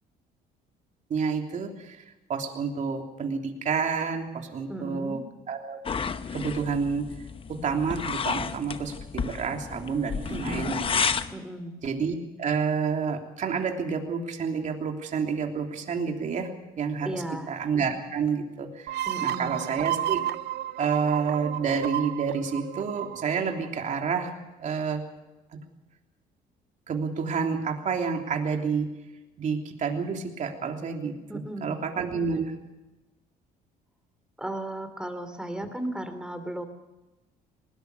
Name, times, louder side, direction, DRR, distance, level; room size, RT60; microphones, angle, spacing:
voice 1, 1.1-2.0 2.3-5.2 5.5-5.8 6.3-7.1 7.5-11.1 11.8-16.5 16.8-20.2 20.8-24.3 24.6-25.0 25.5-25.6 26.9-28.9 29.4-32.5 35.6-35.7, right 5 dB, 45° right, 3 dB, 3.2 m, -29 dB
voice 2, 4.7-5.2 10.3-10.8 11.3-11.8 17.0-17.5 19.1-19.6 31.3-31.8 34.4-36.7, right 1 dB, 5° right, 9 dB, 3.0 m, -35 dB
sound 1, 5.8-11.3, left 6 dB, 30° left, 1.0 m, -31 dB
sound 2, 18.9-24.3, right 12 dB, 75° right, 0.7 m, -32 dB
20.5 x 19.5 x 6.7 m, 1.0 s
cardioid pair, 110°, 17 cm